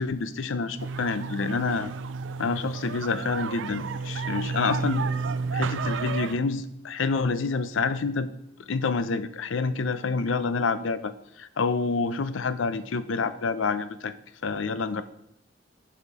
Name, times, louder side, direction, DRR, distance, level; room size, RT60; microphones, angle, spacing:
voice 1, 0.0-1.9 2.4-5.0 5.5-8.3 8.7-11.1 11.4-14.1 14.4-15.0, left 4 dB, 85° left, 13 dB, 0.6 m, -27 dB
sound 1, 0.8-6.4, right 4 dB, 75° right, 0.4 m, -31 dB
10.5 x 4.4 x 4.8 m, 0.81 s
head